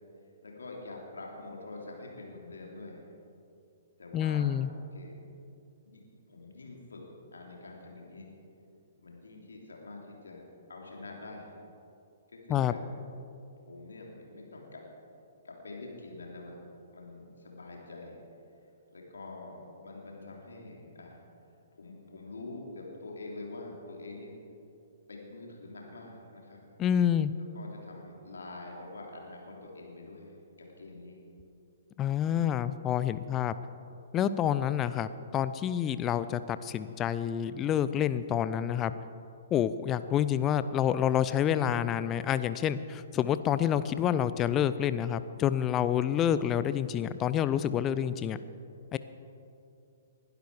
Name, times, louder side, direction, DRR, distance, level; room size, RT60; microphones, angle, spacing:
voice 1, 0.4-3.0 4.0-4.6 4.9-5.2 5.9-8.3 9.0-11.5 12.3-12.8 13.7-14.8 15.4-16.5 16.9-18.2 18.9-21.2 21.7-24.4 25.1-26.6 27.5-31.2, left 2 dB, 75° left, -1 dB, 3.2 m, -45 dB
voice 2, 4.1-4.7 12.5-12.7 26.8-27.3 32.0-33.6 34.1-38.9 39.5-48.4 48.9-49.0, left 10 dB, 25° left, 14 dB, 0.5 m, -28 dB
21.0 x 11.5 x 4.9 m, 2.6 s
figure-of-eight pair, 120°, 0 cm